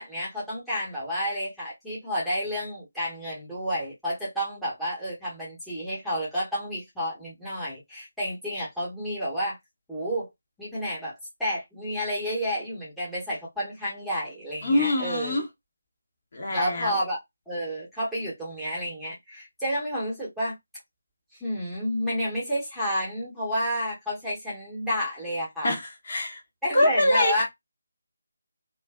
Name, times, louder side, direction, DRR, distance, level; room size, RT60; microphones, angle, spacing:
voice 1, 0.0-9.6 9.9-10.3 10.6-15.4 16.5-17.2 17.5-20.5 21.4-25.7 26.6-27.4, equal, ahead, 1.1 m, -30 dB
voice 2, 14.6-15.4 16.3-17.0 25.6-26.4 26.7-27.4, left 1 dB, 45° left, 1.1 m, -24 dB
2.5 x 2.5 x 2.2 m
figure-of-eight pair, 155°, 0 cm